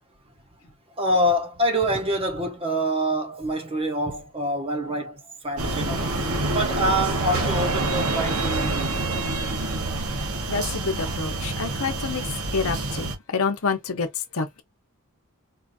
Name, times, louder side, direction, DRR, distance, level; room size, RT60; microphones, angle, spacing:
voice 1, 1.0-6.2 6.5-8.9, equal, 25° right, 0.7 m, -26 dB
sound 1, 5.6-13.1, right 2 dB, 65° right, 1.2 m, -27 dB
voice 2, 10.5-12.2 12.5-14.1 14.3-14.6, left 4 dB, 65° left, 0.8 m, -27 dB
4.3 x 2.5 x 2.6 m
head